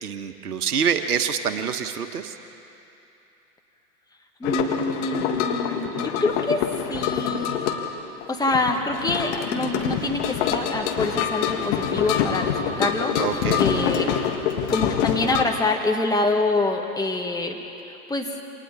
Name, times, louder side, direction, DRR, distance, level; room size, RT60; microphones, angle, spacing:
voice 1, 0.0-2.3 13.1-13.6, right 7 dB, 70° right, 7 dB, 1.5 m, -26 dB
sound 1, 4.4-15.4, left 8 dB, 50° left, 2.1 m, -26 dB
voice 2, 4.4-6.6 6.9-7.6 8.3-13.1 13.6-14.1 14.7-18.3, left 2 dB, 10° left, 2 dB, 1.7 m, -26 dB
28.5 x 26.5 x 4.2 m, 2.9 s
figure-of-eight pair, 100°, 47 cm